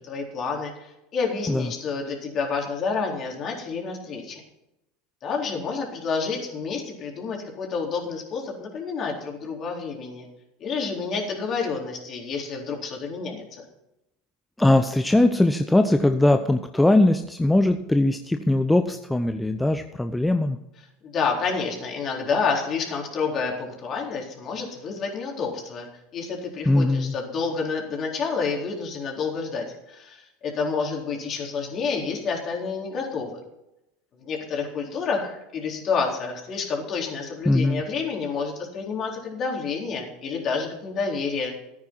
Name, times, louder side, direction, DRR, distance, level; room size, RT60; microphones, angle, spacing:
voice 1, 0.0-4.4 5.2-10.3 10.6-13.6 21.0-25.9 26.1-33.4 34.2-41.5, left 5 dB, 40° left, 0 dB, 4.1 m, -29 dB
voice 2, 14.6-20.6 26.7-27.1 37.5-37.8, left 1 dB, 5° left, 8 dB, 0.8 m, -20 dB
14.0 x 9.6 x 4.5 m, 0.88 s
hypercardioid pair, 80°, 0 cm